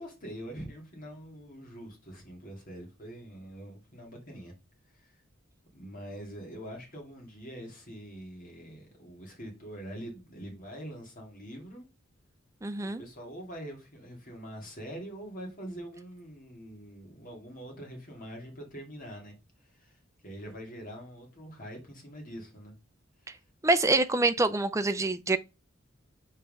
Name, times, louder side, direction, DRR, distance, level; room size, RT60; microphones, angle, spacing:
voice 1, 0.0-4.5 4.9-5.1 5.7-11.9 12.8-22.7 23.2-23.4, equal, 40° left, 2.5 m, -44 dB
voice 2, 12.6-13.0 23.6-25.4, right 2 dB, 15° right, 0.5 m, -25 dB
5.5 x 4.5 x 5.3 m
head